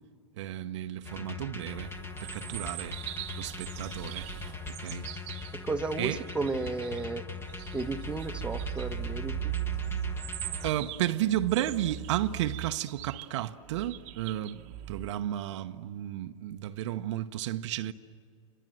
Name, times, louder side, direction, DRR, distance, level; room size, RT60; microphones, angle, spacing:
voice 1, 0.4-1.9 2.2-3.0 3.4-4.3 4.7-5.1 6.0-6.2 10.6-17.9, right 12 dB, 60° right, 0.9 m, -33 dB
sound 1, 1.0-10.7, left 5 dB, 15° left, 1.3 m, -41 dB
sound 2, 1.6-7.1 7.4-15.1, right 13 dB, 40° right, 1.1 m, -39 dB
voice 2, 5.5-7.2 7.7-9.5, right 3 dB, 5° right, 1.1 m, -33 dB
29.0 x 26.5 x 7.8 m
hypercardioid pair, 115°, 17 cm